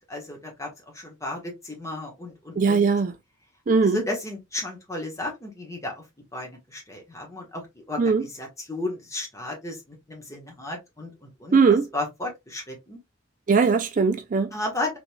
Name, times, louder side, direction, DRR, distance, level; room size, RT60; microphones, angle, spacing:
voice 1, 0.1-2.9 3.8-6.0 6.3-11.6 11.9-13.0 14.5-15.0, left 2 dB, 15° left, 1.2 m, -34 dB
voice 2, 2.6-3.1 3.7-4.0 8.0-8.2 11.5-11.9 13.5-14.5, right 5 dB, 45° right, 0.4 m, -20 dB
3.7 x 3.1 x 2.2 m
head